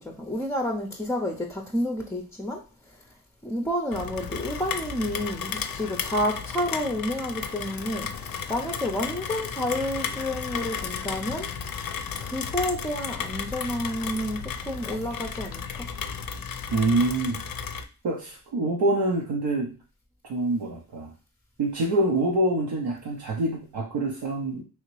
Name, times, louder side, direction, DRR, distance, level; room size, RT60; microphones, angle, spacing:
voice 1, 0.0-3.0 3.4-11.5 12.2-15.9, equal, 10° left, 1 dB, 0.4 m, -30 dB
Rain, 3.9-17.9, left 7 dB, 60° left, 0.5 m, -34 dB
voice 2, 16.7-17.4 18.0-19.7 20.2-21.1 21.6-24.6, right 2 dB, 85° right, -2 dB, 0.6 m, -25 dB
3.1 x 2.8 x 3.0 m, 0.35 s
cardioid pair, 55°, 38 cm